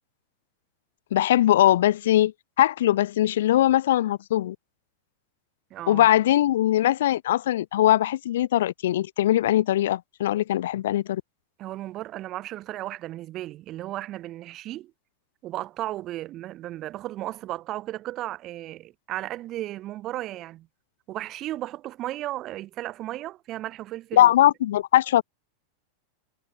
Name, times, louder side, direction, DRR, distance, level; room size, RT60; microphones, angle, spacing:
voice 1, 1.1-2.3 2.6-4.6 5.9-11.2 24.1-25.2, left 13 dB, 60° left, 0.8 m, -21 dB
voice 2, 5.7-6.1 11.6-14.9 15.4-20.7 21.1-24.3, right 15 dB, 35° right, 1.0 m, -35 dB
figure-of-eight pair, 90°, 0 cm